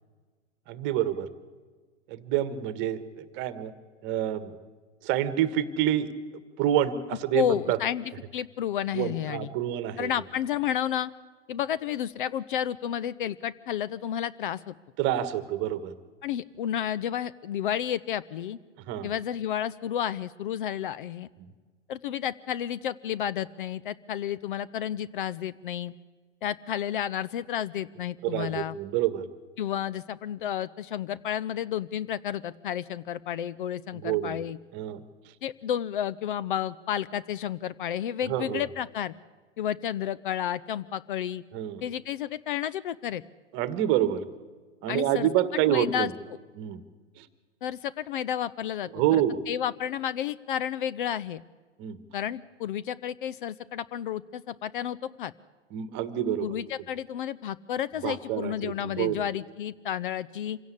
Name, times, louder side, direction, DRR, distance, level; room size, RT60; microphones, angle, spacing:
voice 1, 0.7-1.3 2.1-3.7 4.0-4.5 5.0-6.1 6.6-7.8 8.9-10.1 15.0-15.9 18.8-19.1 21.4-21.5 28.2-29.2 34.0-34.4 34.7-35.0 38.3-38.6 41.5-41.8 43.5-44.2 44.8-46.1 46.6-46.8 47.2-47.3 48.9-49.4 51.8-52.0 55.7-56.5 58.0-59.2, right 11 dB, 30° right, 14 dB, 1.5 m, -27 dB
voice 2, 7.3-9.5 10.0-11.1 11.5-14.7 16.2-18.6 19.0-21.3 21.9-25.9 26.4-28.8 29.6-34.6 35.4-39.1 39.6-41.4 41.8-43.2 44.9-45.3 45.7-46.1 47.6-49.2 49.5-51.4 52.1-55.3 56.4-60.6, left 10 dB, 45° left, 16 dB, 0.6 m, -31 dB
26.0 x 16.5 x 8.4 m, 1.4 s
figure-of-eight pair, 105°, 37 cm